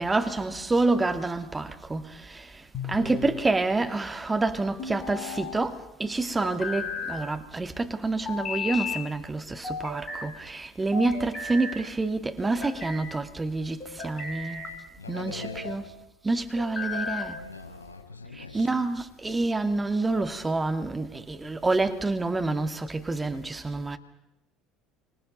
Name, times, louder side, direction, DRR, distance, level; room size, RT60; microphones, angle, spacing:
voice 1, 0.0-14.6 15.1-15.8 16.2-17.4 18.3-24.0, right 3 dB, 15° right, 2.2 m, -28 dB
sound 1, 2.7-3.4 4.8-5.6 6.4-7.2 8.3-9.0 9.6-10.3 10.9-11.8 12.4-13.1 13.8-14.8 15.3-15.8 16.6-17.4, left 4 dB, 40° left, 5.0 m, -35 dB
voice 2, 14.7-15.8 17.3-18.8, left 4 dB, 85° left, 6.6 m, -42 dB
29.5 x 26.0 x 5.3 m
figure-of-eight pair, 65°, 0 cm